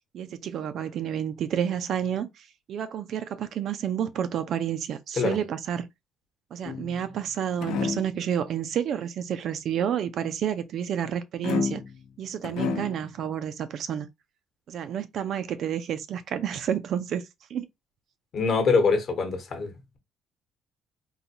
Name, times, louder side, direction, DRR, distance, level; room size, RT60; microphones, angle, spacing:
voice 1, 0.1-5.9 6.5-11.8 12.2-14.1 14.7-17.2 17.5-17.7, right 9 dB, 50° right, 0.4 m, -30 dB
sound 1, 6.6-7.2 7.6-8.2 11.4-12.1 12.4-13.1, left 5 dB, 70° left, 0.7 m, -30 dB
voice 2, 18.3-20.0, left 4 dB, 40° left, 1.0 m, -24 dB
3.9 x 2.2 x 2.7 m
cardioid pair, 165°, 0 cm